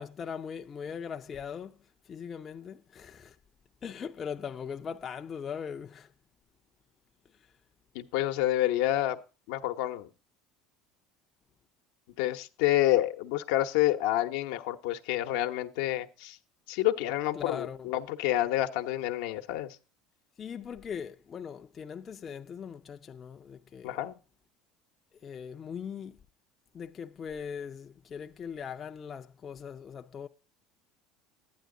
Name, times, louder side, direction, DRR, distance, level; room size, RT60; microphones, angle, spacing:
voice 1, 0.0-1.8 2.1-3.4 3.8-6.1 17.4-17.9 20.4-24.0 25.2-26.2 26.7-30.3, left 7 dB, 30° left, 0.5 m, -40 dB
voice 2, 7.9-9.2 9.5-10.1 12.2-16.4 16.7-19.7 23.8-24.1, left 14 dB, 80° left, 0.9 m, -28 dB
12.0 x 9.4 x 3.7 m
supercardioid pair, 115°, 0 cm